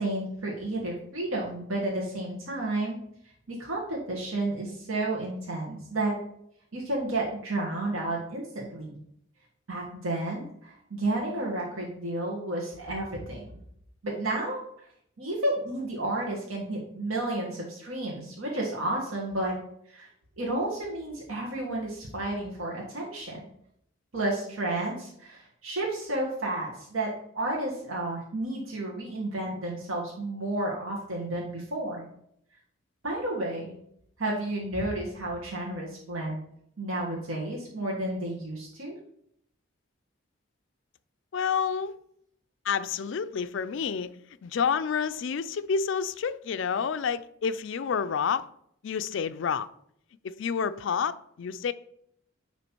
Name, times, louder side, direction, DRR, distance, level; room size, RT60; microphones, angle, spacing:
voice 1, 0.0-3.0 3.5-6.2 6.7-9.0 9.7-13.5 14.0-14.6 15.2-19.6 19.9-20.1 20.4-23.4 24.1-32.0 33.0-33.7 34.2-36.4 36.8-39.0, right 2 dB, 85° right, 1.5 m, -31 dB
voice 2, 41.3-41.9 42.6-44.1 44.4-48.5 48.8-49.7 50.2-51.7, left 6 dB, 65° left, 0.4 m, -29 dB
9.2 x 3.1 x 4.5 m
head